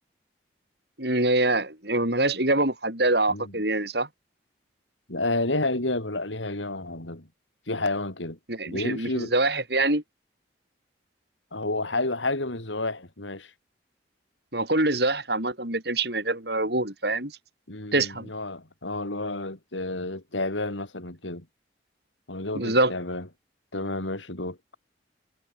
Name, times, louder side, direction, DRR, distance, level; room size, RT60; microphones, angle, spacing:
voice 1, 1.0-4.1 8.5-10.0 14.5-17.3 17.9-18.3 22.5-22.9, right 2 dB, 60° right, 7.3 m, -25 dB
voice 2, 5.1-7.3 7.7-8.4 8.7-9.3 11.5-13.5 17.7-21.5 22.3-23.3 23.7-24.6, left 2 dB, 90° left, 4.0 m, -30 dB
head